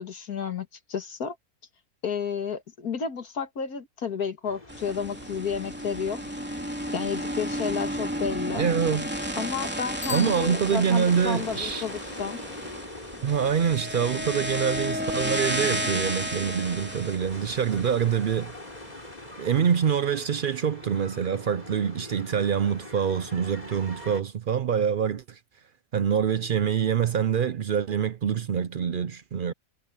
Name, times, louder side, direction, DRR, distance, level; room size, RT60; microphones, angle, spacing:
voice 1, 0.0-1.4 2.0-6.2 6.9-8.7 9.4-12.4, left 6 dB, 80° left, 2.4 m, -31 dB
sound 1, 4.4-24.2, left 2 dB, 25° left, 4.4 m, -44 dB
sound 2, 4.7-18.9, equal, 5° right, 2.7 m, -33 dB
voice 2, 8.6-9.1 10.1-11.8 13.2-18.5 19.4-25.4 25.9-29.5, right 7 dB, 65° right, 0.5 m, -25 dB
Bicycle bell, 10.0-11.3, left 5 dB, 45° left, 3.3 m, -40 dB
omnidirectional pair, 1.6 m